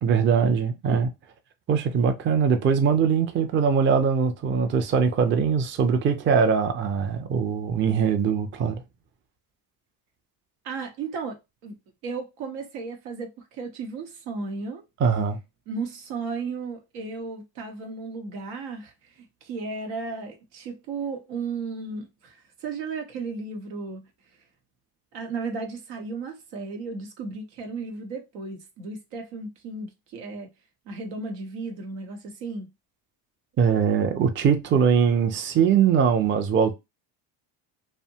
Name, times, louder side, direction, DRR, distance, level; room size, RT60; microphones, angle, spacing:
voice 1, 0.0-1.1 1.7-8.8 15.0-15.4 33.6-36.7, right 6 dB, 25° right, 0.4 m, -22 dB
voice 2, 10.6-11.8 12.0-14.8 15.7-24.1 25.1-30.5 30.9-32.7, right 4 dB, 90° right, 1.0 m, -35 dB
2.7 x 2.2 x 2.7 m
cardioid pair, 100°, 46 cm